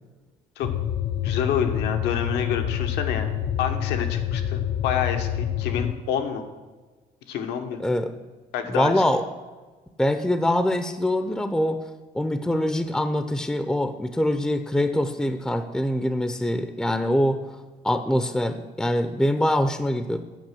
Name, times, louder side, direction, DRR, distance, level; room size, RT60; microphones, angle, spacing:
sound 1, 0.6-5.9, left 10 dB, 60° left, 0.5 m, -27 dB
voice 1, 1.2-6.4 7.3-7.8 8.5-8.9, left 8 dB, 85° left, 6 dB, 1.1 m, -28 dB
voice 2, 8.7-9.2 10.0-11.8 12.1-17.4 17.8-20.2, left 1 dB, 5° left, 9 dB, 0.5 m, -24 dB
9.1 x 5.6 x 7.4 m, 1.3 s
cardioid pair, 110°, 17 cm